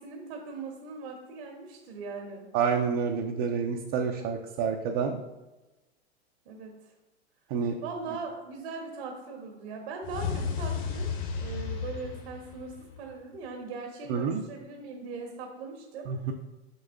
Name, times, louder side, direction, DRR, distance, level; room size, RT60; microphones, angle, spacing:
voice 1, 0.0-2.5 6.4-6.8 7.8-11.1 11.4-16.1, right 4 dB, 65° right, 2 dB, 1.2 m, -40 dB
voice 2, 2.5-5.2 7.5-7.8 14.1-14.4 16.1-16.3, right 6 dB, 50° right, 2 dB, 0.7 m, -28 dB
sound 1, 10.0-13.2, left 6 dB, 50° left, 1.6 m, -33 dB
6.7 x 6.2 x 2.6 m, 1.1 s
hypercardioid pair, 100°, 32 cm